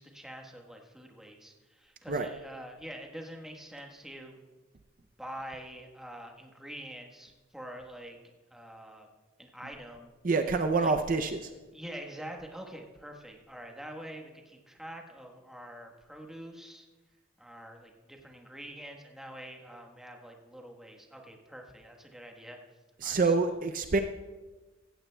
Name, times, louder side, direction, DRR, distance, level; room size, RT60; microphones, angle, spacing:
voice 1, 0.0-4.3 5.2-8.2 8.5-9.1 9.4-10.1 10.5-10.9 11.7-16.9 17.4-22.6 23.0-23.6, right 1 dB, 5° right, 1 dB, 1.2 m, -46 dB
voice 2, 10.2-11.5 23.0-24.0, right 4 dB, 45° right, 7 dB, 0.5 m, -27 dB
16.0 x 15.0 x 2.2 m, 1.3 s
head